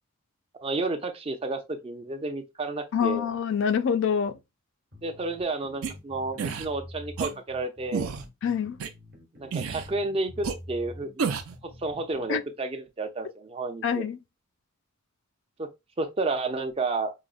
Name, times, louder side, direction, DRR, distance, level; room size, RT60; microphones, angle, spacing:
voice 1, 0.6-3.3 5.0-8.1 9.4-11.3 11.8-14.0 15.6-15.7 16.0-17.1, right 3 dB, 30° right, 0.5 m, -31 dB
voice 2, 2.9-4.4 8.4-8.8 12.3-12.4 13.8-14.2, left 7 dB, 60° left, 0.3 m, -26 dB
sound 1, 4.9-12.3, left 1 dB, 50° right, 1.0 m, -46 dB
sound 2, 5.8-5.9 6.4-6.7 7.2-7.3 7.9-8.2 8.8-8.9 9.5-9.9 10.4-10.5 11.2-11.6, right 6 dB, 85° right, 0.5 m, -30 dB
4.9 x 2.0 x 2.4 m
head